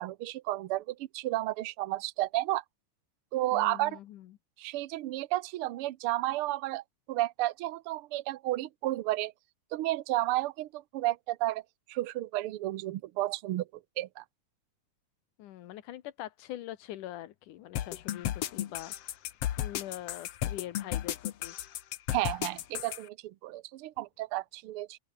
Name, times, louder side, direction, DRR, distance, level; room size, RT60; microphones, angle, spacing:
voice 1, 0.0-2.6 3.3-4.0 4.6-6.8 7.1-9.3 9.7-11.6 11.9-13.7 14.0-14.2 22.1-25.0, right 16 dB, 85° right, 1.2 m, -32 dB
voice 2, 3.5-4.3 15.4-21.6, left 13 dB, 85° left, 2.7 m, -43 dB
sound 1, 17.8-23.0, left 12 dB, 60° left, 1.9 m, -34 dB
open air
omnidirectional pair, 3.5 m